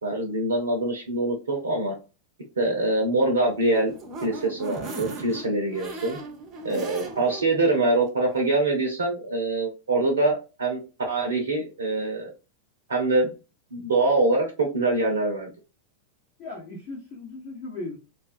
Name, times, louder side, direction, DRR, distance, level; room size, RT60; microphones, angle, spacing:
voice 1, 0.0-2.0 2.6-3.9 4.2-6.2 6.6-10.8 11.1-12.3 12.9-13.3 13.7-15.5, right 2 dB, 70° right, 1 dB, 0.6 m, -24 dB
sound 1, 3.5-7.5 7.9-8.0 8.3-8.4, right 3 dB, 25° right, 0.7 m, -38 dB
voice 2, 16.4-18.0, left 3 dB, 40° left, -5 dB, 0.9 m, -37 dB
2.3 x 2.3 x 2.5 m, 0.31 s
figure-of-eight pair, 90°, 0 cm